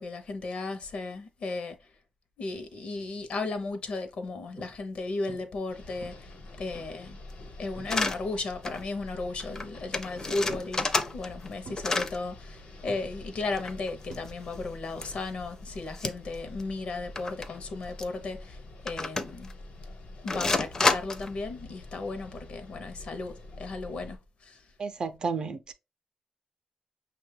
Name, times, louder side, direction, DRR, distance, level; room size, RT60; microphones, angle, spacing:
voice 1, 0.0-1.8 2.4-7.2 7.6-10.9 11.1-18.6 18.8-19.5 20.2-24.6, left 3 dB, 65° left, 0.6 m, -35 dB
sound 1, 2.9-3.3 3.8-4.0 4.6-5.0 5.3-5.7 6.0-7.1 7.8-8.1 8.4-9.3 10.5-11.0 11.6-12.5 12.9-14.8 15.0-15.4 17.5-17.6, right 4 dB, 90° right, 0.6 m, -49 dB
sound 2, 5.7-24.2, left 2 dB, 85° left, 1.1 m, -46 dB
sound 3, 7.9-8.2 8.6-8.8 9.1-9.2 9.4-9.6 9.9-11.5 11.8-12.2 13.5-14.5 15.0-15.1 16.0-16.3 16.6-16.7 17.2-17.5 18.0-18.1 18.9-19.5 20.3-21.3, left 3 dB, 25° left, 0.4 m, -29 dB
voice 2, 24.8-25.7, right 5 dB, 40° right, 0.4 m, -32 dB
6.0 x 2.2 x 3.1 m
wide cardioid pair, 170°, 2 cm